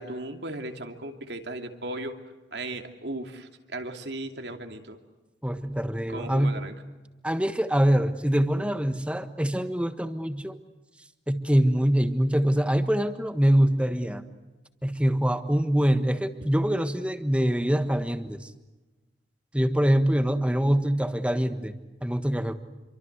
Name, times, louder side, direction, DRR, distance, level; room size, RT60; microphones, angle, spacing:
voice 1, 0.0-2.2 2.5-5.0 6.1-6.7, right 1 dB, 75° right, 5 dB, 2.7 m, -36 dB
voice 2, 5.4-6.7 7.2-10.6 11.3-14.2 14.8-18.5 19.5-21.7 22.0-22.5, equal, 5° right, 9 dB, 1.4 m, -24 dB
28.0 x 24.0 x 8.1 m, 1.1 s
head